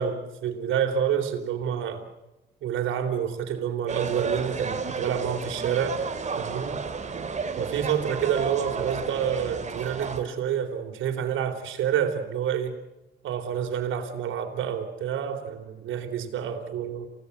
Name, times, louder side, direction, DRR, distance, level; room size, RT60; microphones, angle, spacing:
voice 1, 0.0-2.0 2.6-6.0 6.4-6.8 7.6-12.8 13.2-17.1, right 8 dB, 80° right, 5 dB, 3.6 m, -28 dB
sound 1, 3.9-10.2, right 5 dB, 35° right, 2.9 m, -32 dB
28.5 x 17.0 x 8.2 m, 0.98 s
cardioid pair, 90°, 20 cm